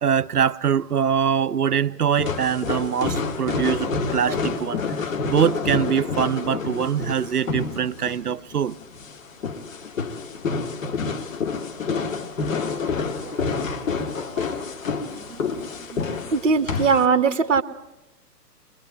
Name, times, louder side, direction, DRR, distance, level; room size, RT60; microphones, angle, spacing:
voice 1, 0.0-8.8 12.5-12.6 12.9-13.4 14.4-14.5 15.1-15.6 15.9-16.2, right 8 dB, 70° right, 0.8 m, -24 dB
sound 1, 2.1-17.0, left 5 dB, 55° left, 1.8 m, -28 dB
voice 2, 16.3-17.6, right 5 dB, 50° right, 1.3 m, -19 dB
23.0 x 22.0 x 7.6 m
figure-of-eight pair, 130°, 48 cm